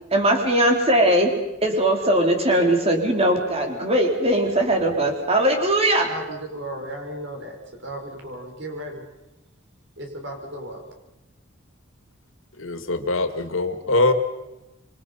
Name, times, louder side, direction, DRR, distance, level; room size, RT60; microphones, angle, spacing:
voice 1, 0.1-6.1, right 1 dB, 30° right, 3 dB, 4.1 m, -20 dB
voice 2, 5.9-9.1 10.0-10.9, right 1 dB, 60° right, 2 dB, 6.1 m, -35 dB
voice 3, 12.6-14.1, left 2 dB, 80° left, 7 dB, 2.2 m, -22 dB
27.0 x 24.5 x 5.7 m, 1.0 s
head